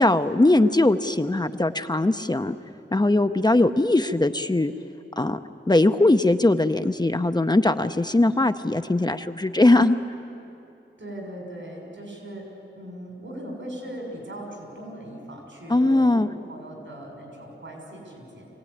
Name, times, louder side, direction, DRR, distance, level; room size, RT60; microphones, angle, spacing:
voice 1, 0.0-2.6 2.9-4.7 5.2-5.4 5.7-10.0 15.7-16.3, left 2 dB, 20° left, 8 dB, 0.7 m, -20 dB
voice 2, 11.0-12.5 12.7-18.5, right 1 dB, 80° right, 0 dB, 6.2 m, -39 dB
24.5 x 16.5 x 9.9 m, 2.7 s
wide cardioid pair, 65°, 20 cm